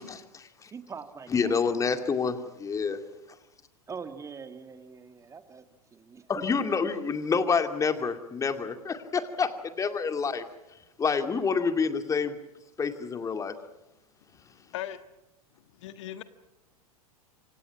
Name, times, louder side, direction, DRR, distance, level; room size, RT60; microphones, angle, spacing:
voice 1, 0.0-0.7 1.3-3.0 6.3-10.4 11.0-12.4 12.8-13.5, left 5 dB, 15° left, 8 dB, 2.4 m, -28 dB
voice 2, 0.7-2.0 3.9-5.6 5.9-6.3 6.6-7.1, right 5 dB, 15° right, 9 dB, 1.9 m, -42 dB
voice 3, 15.8-16.2, left 12 dB, 50° left, 11 dB, 1.5 m, -37 dB
28.5 x 26.0 x 5.9 m, 0.95 s
figure-of-eight pair, 95°, 19 cm